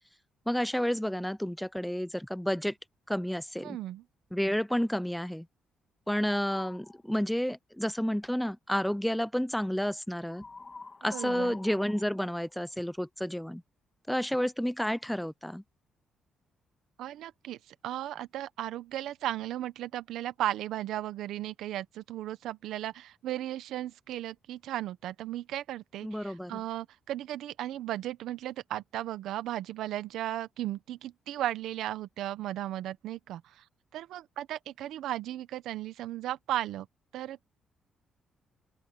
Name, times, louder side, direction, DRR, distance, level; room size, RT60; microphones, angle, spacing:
voice 1, 0.5-2.8 3.1-3.8 4.3-5.5 6.1-10.4 11.0-13.6 14.1-15.6 26.0-26.6, equal, 5° left, 0.7 m, -30 dB
voice 2, 3.6-4.0 11.1-11.6 17.0-33.6 33.9-36.9 37.1-37.4, right 13 dB, 85° right, 1.1 m, -36 dB
sound 1, 6.4-7.0 10.3-13.0, left 3 dB, 30° left, 2.6 m, -47 dB
open air
cardioid pair, 90°, 0 cm